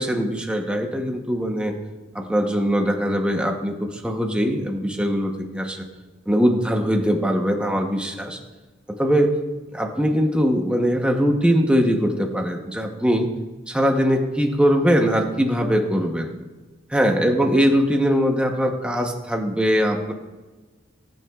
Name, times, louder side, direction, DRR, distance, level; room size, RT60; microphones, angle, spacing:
voice 1, 0.0-1.8 2.1-5.8 6.3-8.4 9.0-9.3 9.7-13.3 13.7-16.3 16.9-20.1, equal, 5° right, 2 dB, 0.8 m, -21 dB
20.5 x 9.2 x 2.3 m, 1.2 s
head